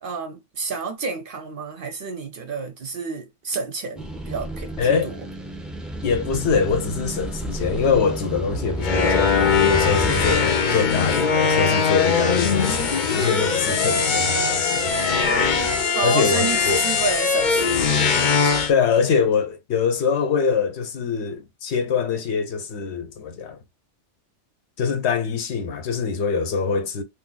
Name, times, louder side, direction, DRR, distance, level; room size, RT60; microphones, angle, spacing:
voice 1, 0.0-5.2 15.9-18.0, right 4 dB, 55° right, 0.7 m, -30 dB
sound 1, 4.0-10.4, right 2 dB, ahead, 0.3 m, -31 dB
voice 2, 4.8-5.1 6.0-14.9 16.0-16.8 18.4-23.6 24.8-27.0, left 5 dB, 70° left, 0.9 m, -24 dB
sound 2, 8.8-18.7, left 5 dB, 50° left, 0.7 m, -21 dB
2.7 x 2.6 x 3.8 m
omnidirectional pair, 1.3 m